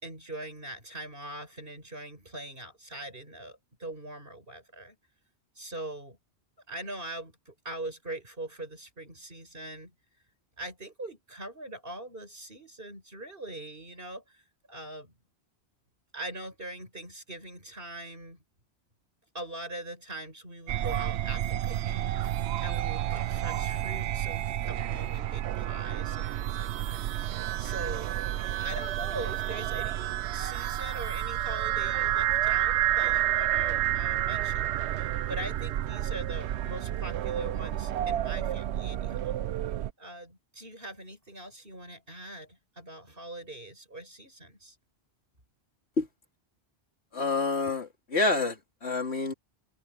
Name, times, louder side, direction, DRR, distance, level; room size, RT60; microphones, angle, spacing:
voice 1, 0.0-5.0 5.6-6.2 6.7-9.9 10.6-14.4 14.7-15.1 16.1-18.4 19.3-22.1 22.6-28.2 28.5-39.4 40.0-44.8, right 1 dB, 60° right, 7.2 m, -42 dB
sound 1, 20.7-39.9, right 12 dB, 85° right, 0.9 m, -30 dB
voice 2, 47.1-49.3, left 3 dB, 80° left, 3.1 m, -28 dB
omnidirectional pair, 1.1 m